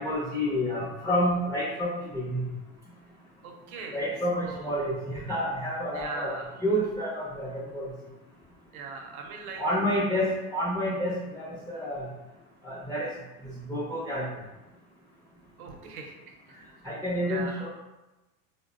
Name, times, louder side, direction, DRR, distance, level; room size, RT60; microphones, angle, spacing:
voice 1, 0.0-2.4 3.9-6.3 6.6-7.9 9.6-12.1 12.6-13.1 13.7-14.3 16.8-17.7, equal, 5° left, -7 dB, 0.6 m, -29 dB
voice 2, 3.4-4.0 4.3-4.6 5.9-6.6 8.7-10.0 15.6-16.6 17.3-17.6, right 4 dB, 75° right, 2 dB, 0.8 m, -40 dB
3.8 x 2.1 x 2.5 m, 1.1 s
hypercardioid pair, 105°, 44 cm